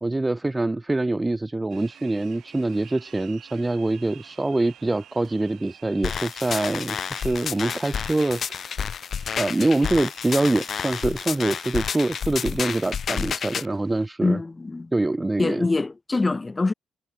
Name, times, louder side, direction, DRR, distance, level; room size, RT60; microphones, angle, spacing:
voice 1, 0.0-8.9 9.4-14.4 14.9-15.7, right 2 dB, 15° right, 0.4 m, -25 dB
sound 1, 1.7-14.1, right 11 dB, 70° right, 5.5 m, -51 dB
sound 2, 6.0-13.7, left 7 dB, 50° left, 2.3 m, -30 dB
voice 2, 14.2-14.9 15.4-16.7, left 3 dB, 20° left, 1.8 m, -24 dB
cardioid pair, 90°, 0 cm